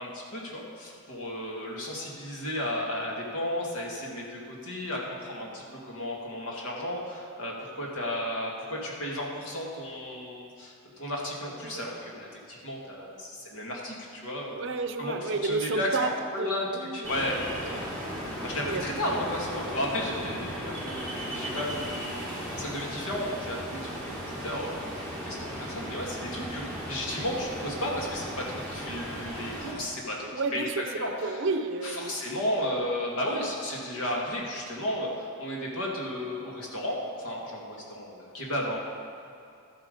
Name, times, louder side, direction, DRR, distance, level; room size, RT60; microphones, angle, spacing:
voice 1, 0.0-14.6 15.0-17.8 18.4-24.8 25.3-30.7 31.0-31.4 31.8-38.8, left 1 dB, 85° left, -2 dB, 2.1 m, -34 dB
voice 2, 14.5-17.1 18.6-18.8 30.2-32.2, right 3 dB, 55° right, 8 dB, 0.6 m, -31 dB
Ocean, 17.0-29.7, equal, 5° left, 2.3 m, -36 dB
12.5 x 7.7 x 5.3 m, 2.6 s
head